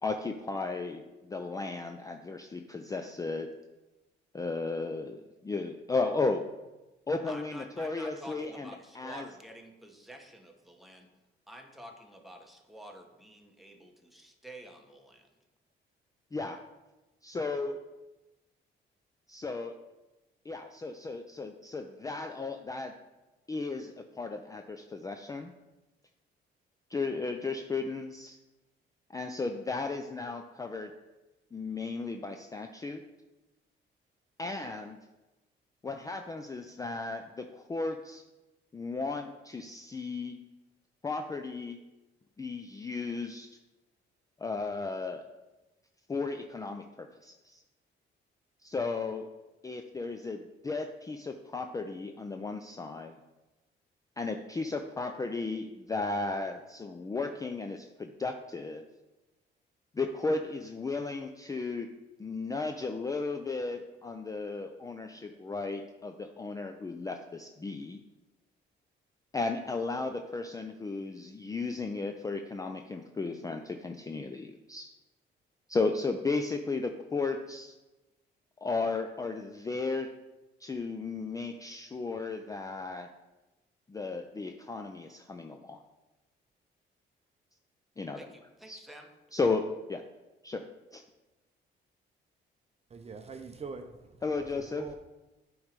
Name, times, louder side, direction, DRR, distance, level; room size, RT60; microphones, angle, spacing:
voice 1, 0.0-3.5 4.3-6.4 7.1-8.7 8.9-9.3 16.3-16.6 17.2-17.8 19.3-19.8 20.5-22.9 23.5-25.5 26.9-28.4 29.1-30.9 31.5-33.0 34.4-35.0 35.8-38.2 38.7-40.4 41.0-41.8 42.4-43.5 44.4-45.3 46.1-47.6 48.6-49.3 49.6-53.2 54.2-58.8 59.9-61.9 62.2-68.0 69.3-74.9 75.7-77.7 78.6-80.1 80.6-83.1 83.9-85.8 88.0-88.3 88.7-88.8 89.3-90.0 90.4-90.7 90.9-91.0 94.2-94.9, left 3 dB, 15° left, 6 dB, 0.4 m, -35 dB
voice 2, 7.3-11.1 11.5-15.3 88.2-89.1, equal, ahead, 3 dB, 1.0 m, -49 dB
voice 3, 92.9-94.9, right 4 dB, 30° right, 6 dB, 0.6 m, -44 dB
8.5 x 3.1 x 5.1 m, 1.1 s
cardioid pair, 90°, 20 cm